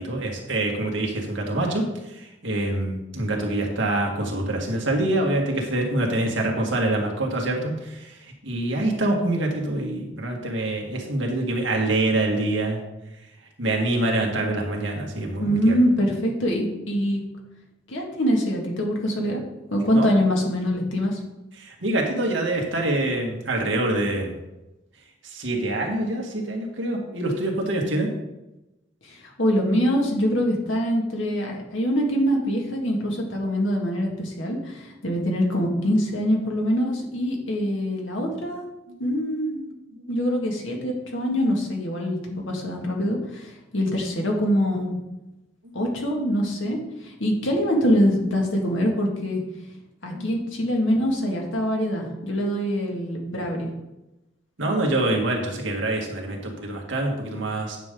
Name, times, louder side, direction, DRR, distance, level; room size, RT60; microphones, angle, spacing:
voice 1, 0.0-12.8 13.6-15.8 19.9-20.2 21.6-24.4 25.2-28.1 39.9-40.1 50.1-50.2 54.6-57.8, right 2 dB, 70° right, 0 dB, 1.8 m, -25 dB
voice 2, 15.4-17.2 17.9-19.4 19.7-21.2 29.0-38.7 39.0-39.7 40.1-45.0 45.7-49.4 50.0-53.7, equal, 90° left, 0 dB, 1.9 m, -24 dB
9.3 x 6.6 x 3.8 m, 0.97 s
head